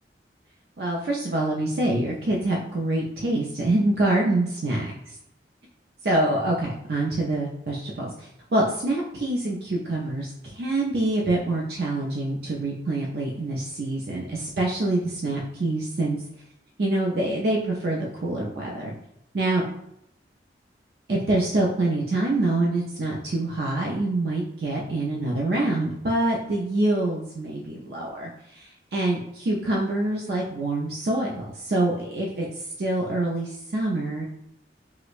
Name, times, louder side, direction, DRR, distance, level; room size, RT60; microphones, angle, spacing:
voice 1, 0.8-4.8 6.0-16.2 16.8-18.9 19.3-19.6 21.1-32.5 32.8-34.2, right 2 dB, 60° right, -2 dB, 0.5 m, -25 dB
4.8 x 2.0 x 2.4 m, 0.78 s
head